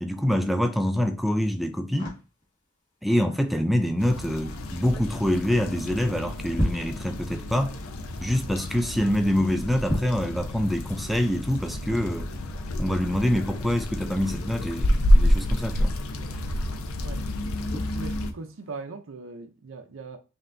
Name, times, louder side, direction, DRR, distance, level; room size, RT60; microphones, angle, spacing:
voice 1, 0.0-2.2 3.0-7.8 8.2-12.3 12.8-16.0, equal, ahead, 0.4 m, -25 dB
sound 1, 0.8-18.8, equal, 35° left, 1.7 m, -39 dB
sound 2, 4.0-18.3, equal, 85° left, 0.6 m, -28 dB
voice 2, 17.9-20.2, right 4 dB, 65° right, 0.6 m, -39 dB
5.4 x 2.8 x 2.6 m
head